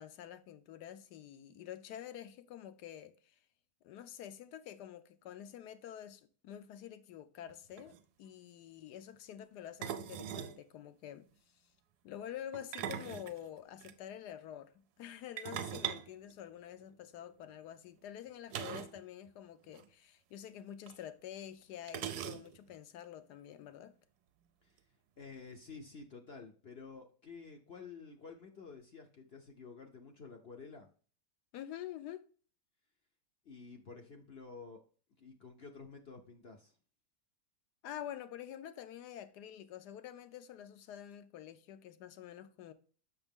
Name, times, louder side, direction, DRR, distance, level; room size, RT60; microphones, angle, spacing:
voice 1, 0.0-3.3 3.8-11.3 12.0-23.9 31.5-32.2 37.8-42.7, left 10 dB, 75° left, 1.3 m, -48 dB
sound 1, 7.5-7.6 7.8-8.0 9.8-10.6 12.5-13.9 15.4-17.0 18.5-19.0 19.3-19.4 19.7-19.8 20.9-21.0 21.9-22.7, right 10 dB, 75° right, 1.1 m, -41 dB
voice 2, 25.2-30.9 33.4-34.8 35.2-36.8, left 4 dB, 50° left, 0.8 m, -51 dB
7.1 x 6.1 x 3.5 m
omnidirectional pair, 1.8 m